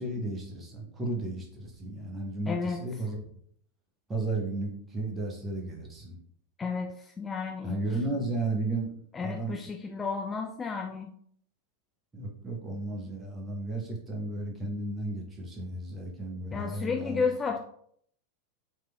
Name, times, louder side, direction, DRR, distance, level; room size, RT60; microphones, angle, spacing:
voice 1, 0.0-3.2 4.1-6.2 7.6-8.9 9.2-9.6 12.1-17.2, right 2 dB, 15° right, -1 dB, 1.1 m, -34 dB
voice 2, 2.5-2.8 6.6-7.8 9.1-11.1 16.5-17.6, left 5 dB, 20° left, 2 dB, 0.3 m, -32 dB
4.6 x 3.2 x 2.2 m, 0.65 s
figure-of-eight pair, 90°, 0 cm